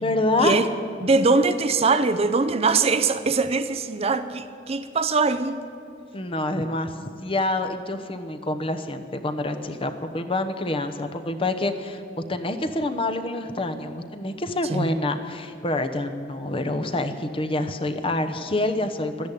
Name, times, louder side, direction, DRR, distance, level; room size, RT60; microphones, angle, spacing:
voice 1, 0.0-0.5 6.1-6.9 7.2-12.0 12.3-19.3, left 2 dB, 30° left, 8 dB, 0.9 m, -27 dB
voice 2, 1.0-5.6 14.6-14.9, right 3 dB, 30° right, 11 dB, 0.5 m, -22 dB
13.0 x 10.5 x 10.0 m, 2.4 s
head